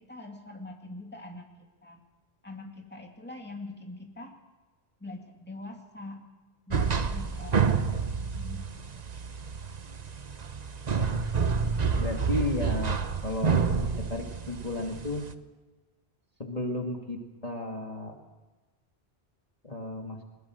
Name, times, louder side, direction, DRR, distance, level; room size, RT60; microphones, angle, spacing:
voice 1, 0.0-1.5 1.8-2.0 2.4-4.3 5.0-6.3 6.7-8.7, left 2 dB, 10° left, 1 dB, 2.5 m, -43 dB
sound 1, 6.7-15.3, right 5 dB, 40° right, 1.0 m, -29 dB
voice 2, 12.0-15.2 16.4-18.2 19.6-20.2, left 2 dB, 35° left, 2 dB, 2.4 m, -34 dB
21.0 x 21.0 x 6.4 m, 1.2 s
omnidirectional pair, 1.1 m